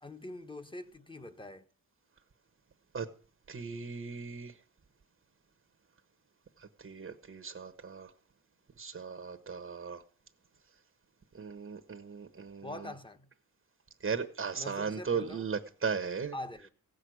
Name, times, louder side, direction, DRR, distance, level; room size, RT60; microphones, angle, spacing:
voice 1, 0.0-1.7 12.6-13.3 14.5-15.4 16.3-16.7, left 1 dB, 15° left, 1.3 m, -44 dB
voice 2, 3.5-4.6 6.6-8.1 8.8-10.0 11.3-12.9 14.0-16.4, right 5 dB, 35° right, 1.1 m, -37 dB
15.5 x 6.4 x 9.3 m
cardioid pair, 85°, 38 cm